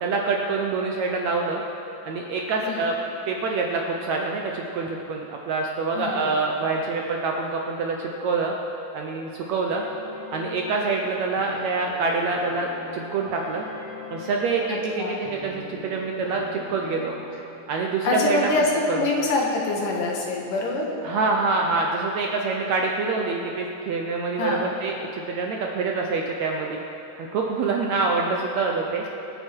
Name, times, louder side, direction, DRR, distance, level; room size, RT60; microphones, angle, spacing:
voice 1, 0.0-1.6 2.1-3.0 3.3-8.5 8.9-9.8 10.3-12.7 12.9-13.6 14.1-17.1 17.7-18.5 18.9-19.1 21.0-26.8 27.2-29.0, right 4 dB, 70° right, 1 dB, 1.7 m, -26 dB
voice 2, 2.6-2.9 6.0-6.3 14.7-15.2 18.0-20.9 24.4-24.8, left 3 dB, 70° left, -1 dB, 3.1 m, -25 dB
sound 1, 9.7-17.4, left 3 dB, 40° left, 3.6 m, -40 dB
26.0 x 9.0 x 4.7 m, 3.0 s
omnidirectional pair, 4.0 m